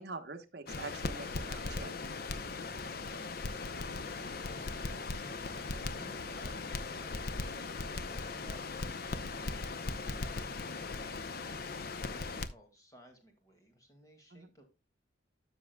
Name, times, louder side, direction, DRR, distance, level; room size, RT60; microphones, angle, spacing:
voice 1, 0.0-1.9 6.0-6.2 14.3-14.5, right 3 dB, 55° right, 5 dB, 1.1 m, -45 dB
Crackle, 0.7-12.5, left 3 dB, 50° left, 0.6 m, -39 dB
sound 1, 1.5-12.2, left 1 dB, 80° left, 2.4 m, -63 dB
voice 2, 3.6-11.7 12.1-14.6, right 1 dB, 15° left, 4 dB, 2.0 m, -60 dB
12.5 x 6.3 x 2.2 m, 0.27 s
head